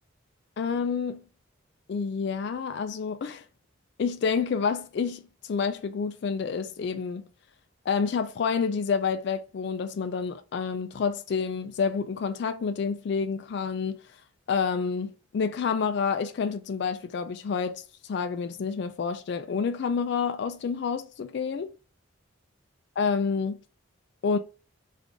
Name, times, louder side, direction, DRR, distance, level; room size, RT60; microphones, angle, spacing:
voice 1, 0.6-1.2 1.9-3.4 4.0-7.3 7.9-14.0 14.5-17.8 18.1-21.7 23.0-23.6 24.2-24.4, left 5 dB, 55° left, 0.3 m, -28 dB
3.7 x 2.5 x 3.4 m
head